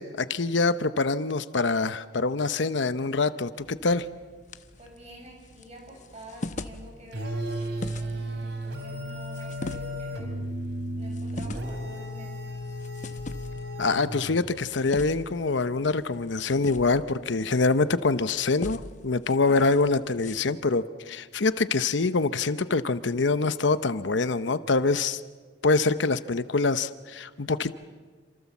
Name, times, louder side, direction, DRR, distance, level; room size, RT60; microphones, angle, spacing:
voice 1, 0.0-4.1 13.8-25.2 25.6-27.8, left 3 dB, 70° left, 13 dB, 0.8 m, -25 dB
sound 1, 3.6-20.4, left 2 dB, 40° left, 1.0 m, -43 dB
voice 2, 4.8-10.4 11.0-12.8, equal, 35° right, 1 dB, 7.9 m, -47 dB
sound 2, 7.1-14.6, equal, 65° right, 3.2 m, -34 dB
28.0 x 26.5 x 7.2 m, 1.5 s
head